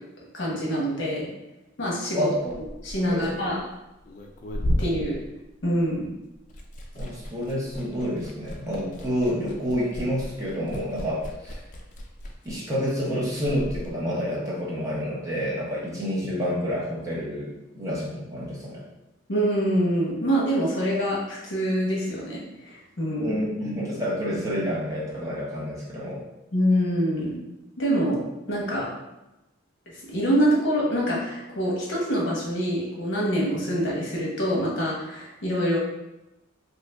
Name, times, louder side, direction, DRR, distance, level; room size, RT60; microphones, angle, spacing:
voice 1, 0.3-1.3 1.8-2.3 2.8-3.6 4.8-5.2 5.6-6.1 19.3-23.3 26.5-27.4 27.8-28.9 30.1-35.8, equal, 65° left, -4 dB, 0.9 m, -25 dB
voice 2, 2.1-2.6 3.1-3.4 7.0-11.6 12.4-17.5 17.7-18.8 23.2-26.2, equal, 15° right, -7 dB, 0.7 m, -29 dB
Liquid, 2.3-6.0 6.3-13.9, equal, 40° left, 0.3 m, -34 dB
2.7 x 2.5 x 3.3 m, 0.96 s
head